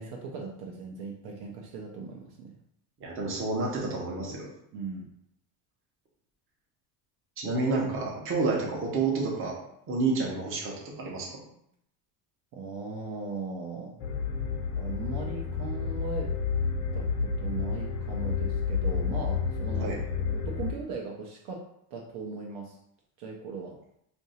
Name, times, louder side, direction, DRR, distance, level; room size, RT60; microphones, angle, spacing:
voice 1, 0.0-2.6 4.7-5.1 12.5-14.0 14.7-16.3 16.9-21.6 21.9-22.8 23.2-23.8, right 4 dB, 60° right, 0 dB, 0.6 m, -38 dB
voice 2, 3.0-4.5 7.4-9.6 9.9-11.3 19.8-20.0, right 3 dB, 30° right, -2 dB, 0.8 m, -29 dB
sound 1, 14.0-20.7, left 5 dB, 85° left, 0.9 m, -30 dB
2.8 x 2.6 x 4.2 m, 0.74 s
cardioid pair, 160°, 46 cm